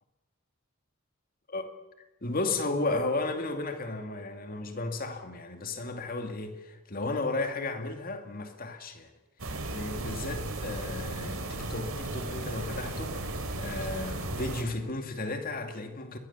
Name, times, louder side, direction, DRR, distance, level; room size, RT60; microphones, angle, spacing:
voice 1, 2.2-9.1 9.7-13.3 13.6-16.2, left 2 dB, 45° left, 2.4 m, -34 dB
sound 1, 9.4-14.6, right 2 dB, 85° right, 3.5 m, -35 dB
22.5 x 19.0 x 7.3 m
head